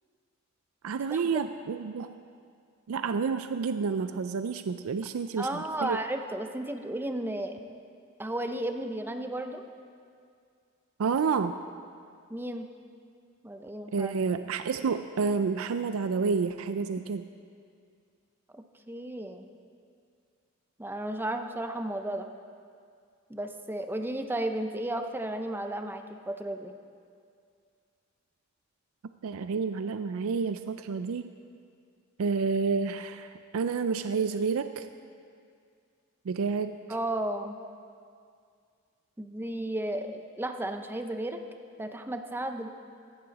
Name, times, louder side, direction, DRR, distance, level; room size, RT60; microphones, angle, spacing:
voice 1, 0.8-2.2 2.9-6.0 11.0-11.5 13.9-17.3 29.2-31.3 32.2-34.9 36.3-36.8, right 5 dB, 85° right, 10 dB, 0.4 m, -29 dB
voice 2, 5.4-7.6 8.2-9.6 12.3-12.7 13.4-14.1 18.5-19.4 20.8-22.3 23.3-26.7 36.9-37.6 39.2-41.4 41.8-42.7, right 1 dB, 10° right, 6 dB, 0.7 m, -34 dB
16.0 x 11.5 x 4.1 m, 2.3 s
head